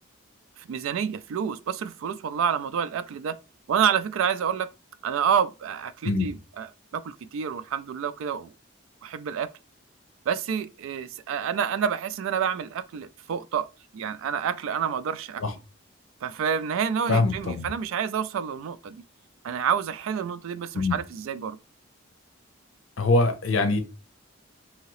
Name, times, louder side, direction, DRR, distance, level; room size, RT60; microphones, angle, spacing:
voice 1, 0.6-3.4 3.7-4.7 5.0-6.7 6.9-8.5 9.0-9.5 10.3-13.7 13.9-15.4 16.2-19.0 19.4-21.6, right 7 dB, 80° right, 0.3 m, -28 dB
voice 2, 17.1-17.7 20.7-21.0 23.0-23.8, left 3 dB, 75° left, 0.6 m, -23 dB
2.8 x 2.8 x 3.0 m
head